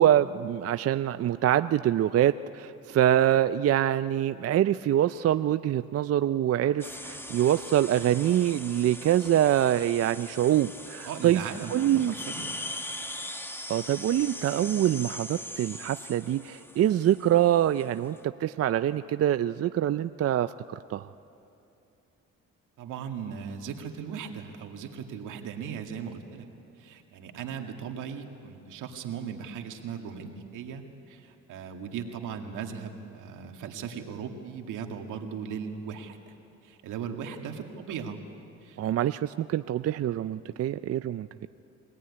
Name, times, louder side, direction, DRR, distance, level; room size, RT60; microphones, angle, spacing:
voice 1, 0.0-11.4 11.7-12.1 13.7-21.1 38.8-41.5, right 11 dB, 50° right, 12 dB, 0.5 m, -25 dB
sound 1, 6.8-18.2, left 1 dB, 10° left, 1.1 m, -41 dB
voice 2, 11.0-12.5 22.8-26.5 26.8-36.3 36.6-38.2 38.6-38.8, right 7 dB, 90° right, 3 dB, 2.1 m, -38 dB
23.5 x 17.5 x 9.7 m, 2.7 s
cardioid pair, 90°, 30 cm